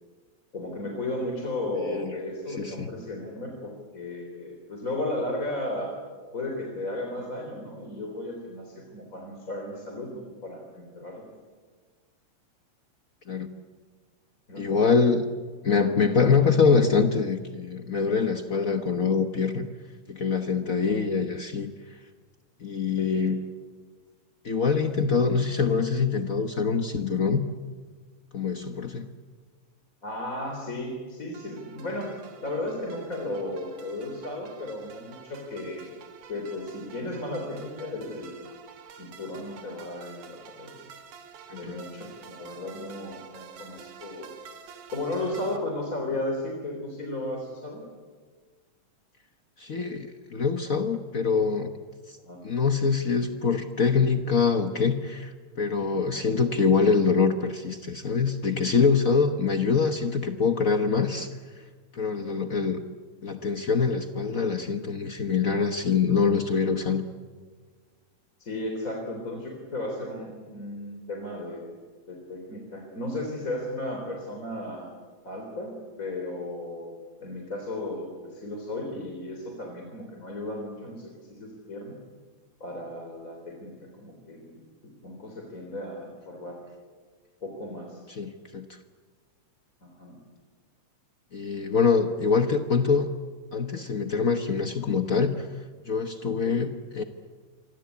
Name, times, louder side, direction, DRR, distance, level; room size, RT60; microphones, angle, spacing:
voice 1, 0.5-5.9 6.3-11.3 14.5-14.6 15.8-16.3 23.0-23.3 30.0-32.1 32.4-36.0 36.3-38.4 38.9-40.7 41.5-44.3 44.9-47.8 52.2-52.4 62.2-62.4 68.4-71.7 72.1-74.9 75.2-75.7 76.0-76.9 77.2-82.0 82.6-84.6 85.0-86.6 87.4-88.0 89.8-90.2 96.4-96.6, left 1 dB, 25° left, 2 dB, 3.9 m, -35 dB
voice 2, 1.8-2.1 2.6-2.9 13.3-13.5 14.5-15.3 15.6-19.7 20.1-21.7 22.6-23.4 24.4-27.5 28.3-29.1 41.5-41.8 49.6-51.7 52.1-52.2 52.4-61.3 61.9-62.8 63.2-67.0 88.1-88.7 91.3-93.1 93.5-95.5 95.8-97.0, left 5 dB, 90° left, 7 dB, 0.7 m, -24 dB
sound 1, 31.3-45.6, right 7 dB, 90° right, 3.2 m, -49 dB
27.5 x 24.5 x 8.4 m, 1.5 s
omnidirectional pair, 3.3 m